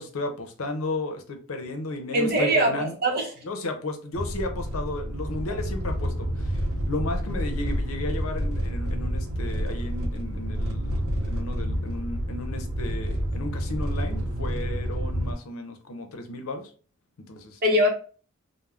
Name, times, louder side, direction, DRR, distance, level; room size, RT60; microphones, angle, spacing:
voice 1, 0.0-2.9 3.4-16.7 17.3-17.6, left 2 dB, 75° left, 5 dB, 0.6 m, -34 dB
voice 2, 2.1-3.3 5.5-5.6 17.6-17.9, equal, 45° right, 0 dB, 0.8 m, -22 dB
sound 1, 4.1-15.3, equal, 80° right, 0.5 m, -29 dB
3.3 x 2.0 x 2.3 m, 0.39 s
head